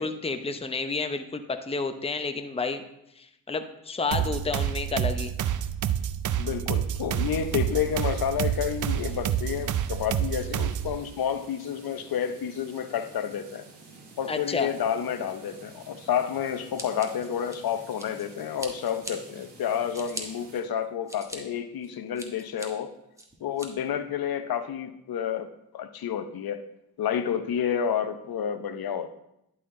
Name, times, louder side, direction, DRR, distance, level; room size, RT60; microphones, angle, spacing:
voice 1, 0.0-2.8 3.2-5.3 14.3-14.7, left 4 dB, 15° left, 8 dB, 0.7 m, -30 dB
sound 1, 4.1-11.0, right 10 dB, 45° right, 0.5 m, -28 dB
voice 2, 6.4-13.7 14.2-22.9 23.4-26.7 27.0-29.1, left 8 dB, 60° left, 10 dB, 0.8 m, -30 dB
sound 2, 7.1-20.6, right 3 dB, 85° right, 1.7 m, -51 dB
Scissors, 16.7-18.2 18.6-19.1 19.6-20.2 20.8-21.4 21.8-22.7 23.2-23.7, right 1 dB, 5° right, 1.5 m, -40 dB
11.0 x 4.3 x 3.7 m, 0.83 s
supercardioid pair, 65°, 42 cm